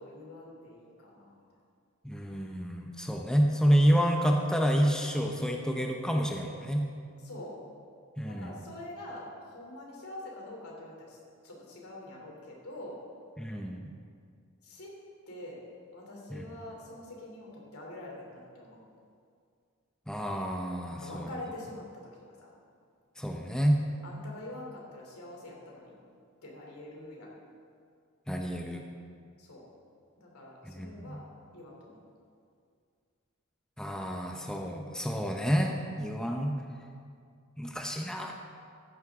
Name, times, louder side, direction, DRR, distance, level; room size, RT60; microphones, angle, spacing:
voice 1, 0.0-1.4 7.2-7.6 8.2-11.2 11.4-13.0 14.6-14.9 15.3-15.6 15.9-18.8 20.9-21.9 22.4-22.5 24.0-25.9 26.4-27.3 29.4-29.7 30.2-31.2 31.5-32.0, left 1 dB, 80° left, -2 dB, 3.1 m, -45 dB
voice 2, 2.0-6.9 8.2-8.5 13.4-13.8 16.3-16.4 20.1-21.3 23.2-23.8 28.3-28.8 30.7-31.2 33.8-36.6 37.6-38.3, equal, 5° left, 2 dB, 0.6 m, -29 dB
14.5 x 10.5 x 3.6 m, 2.3 s
head